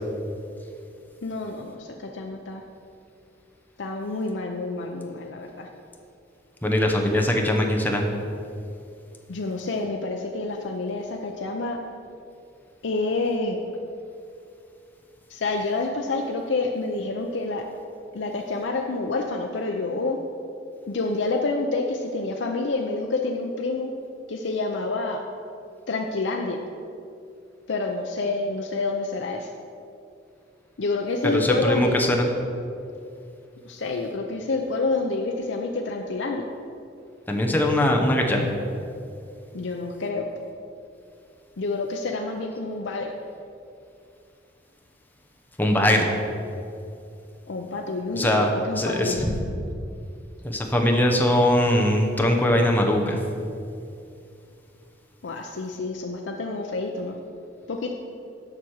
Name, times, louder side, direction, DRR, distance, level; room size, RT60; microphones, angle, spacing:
voice 1, 1.2-2.6 3.8-5.7 9.3-11.8 12.8-13.6 15.3-17.6 18.1-20.2 20.9-23.9 24.3-25.2 25.9-26.6 27.7-29.5 30.8-32.2 33.6-36.5 39.5-40.3 41.6-43.1 47.5-49.3 55.2-57.2 57.7-57.9, left 3 dB, 70° left, 2 dB, 0.6 m, -28 dB
voice 2, 6.6-8.0 31.2-32.3 37.3-38.5 45.6-46.1 48.1-48.5 48.8-49.2 50.4-53.2, left 1 dB, 10° left, 1 dB, 0.9 m, -21 dB
7.4 x 6.0 x 6.4 m, 2.6 s
head